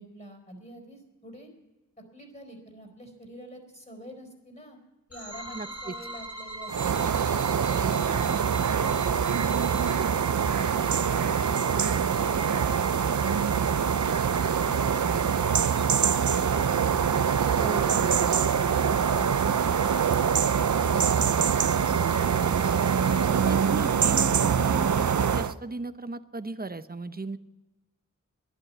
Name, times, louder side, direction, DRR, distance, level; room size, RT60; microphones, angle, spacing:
voice 1, 0.0-1.5 2.1-4.8 5.1-7.1, right 1 dB, 25° left, 2 dB, 4.0 m, -46 dB
sound 1, 5.1-9.9, equal, 50° left, 2.3 m, -45 dB
sound 2, 5.3-23.3, right 2 dB, 15° right, 1.8 m, -41 dB
voice 2, 5.5-5.9 8.1-8.3 17.6-18.7 23.3-27.4, right 3 dB, 30° right, 12 dB, 0.8 m, -36 dB
sound 3, 6.7-25.5, right 7 dB, 65° right, 0.5 m, -24 dB
12.0 x 10.5 x 9.4 m, 1.1 s
wide cardioid pair, 40°, 31 cm